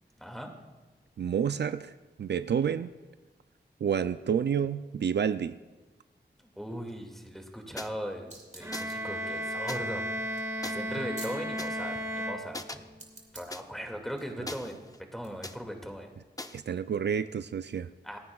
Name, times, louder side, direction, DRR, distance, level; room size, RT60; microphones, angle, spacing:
voice 1, 0.2-0.5 6.6-10.3 10.6-12.9 13.3-14.8 15.1-16.1 18.0-18.2, equal, ahead, 3 dB, 2.2 m, -39 dB
voice 2, 1.2-1.9 2.2-2.9 3.8-5.6 16.5-17.9, right 7 dB, 70° right, 12 dB, 0.4 m, -29 dB
sound 1, 7.8-7.9 8.7-9.0 9.7-9.8 10.6-10.7 11.6-11.7 12.5-12.8 13.5-13.6 14.5-15.0 15.4-15.6 16.4-16.6, left 2 dB, 20° left, 0.7 m, -40 dB
sound 2, 8.3-11.7 13.0-13.7 14.2-15.3, right 2 dB, 40° right, 2.7 m, -50 dB
Bowed string instrument, 8.6-13.1, equal, 15° right, 2.3 m, -35 dB
28.5 x 9.5 x 2.4 m, 1.2 s
cardioid pair, 50°, 18 cm